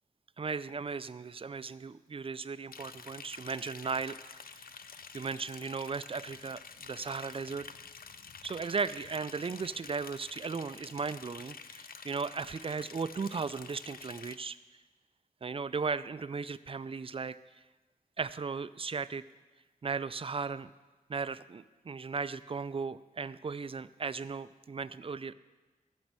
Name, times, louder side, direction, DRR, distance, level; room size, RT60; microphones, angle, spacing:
voice 1, 0.4-4.7 5.1-7.7 8.4-14.6 15.4-17.6 18.2-19.2 19.8-20.7 21.1-25.3, right 5 dB, 40° right, 15 dB, 0.4 m, -36 dB
Liquid, 2.7-14.3, left 6 dB, 75° left, 0.5 m, -49 dB
14.0 x 5.3 x 7.5 m, 1.3 s
wide cardioid pair, 85°, 15 cm